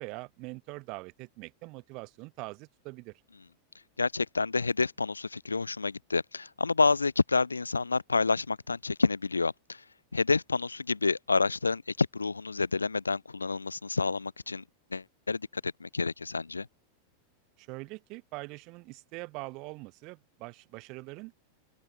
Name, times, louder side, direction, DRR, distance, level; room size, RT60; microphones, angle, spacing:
voice 1, 0.0-3.2 17.6-21.3, right 25 dB, 40° right, 1.5 m, -43 dB
voice 2, 4.0-9.8 10.1-14.6 14.9-16.7, left 4 dB, 80° left, 0.6 m, -29 dB
figure-of-eight pair, 90°, 0 cm